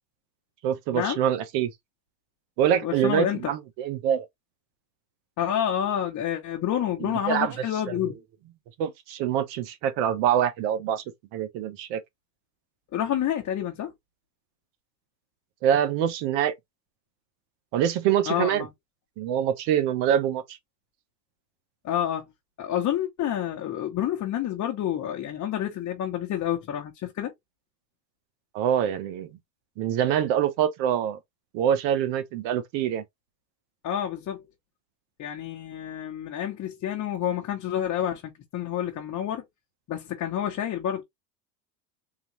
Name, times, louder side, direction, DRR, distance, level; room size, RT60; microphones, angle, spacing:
voice 1, 0.6-1.7 2.6-4.3 7.0-7.5 7.9-8.0 8.8-11.0 11.3-12.0 15.6-16.5 17.7-18.7 19.2-20.4 28.5-29.3 29.8-31.2 31.5-33.0, right 9 dB, 60° right, 1.0 m, -25 dB
voice 2, 2.8-3.5 5.4-8.2 12.9-13.9 18.3-18.7 21.8-22.2 22.6-27.3 33.8-34.5 35.2-39.4 39.9-41.0, left 10 dB, 35° left, 1.0 m, -29 dB
3.8 x 2.3 x 3.0 m
supercardioid pair, 115°, 49 cm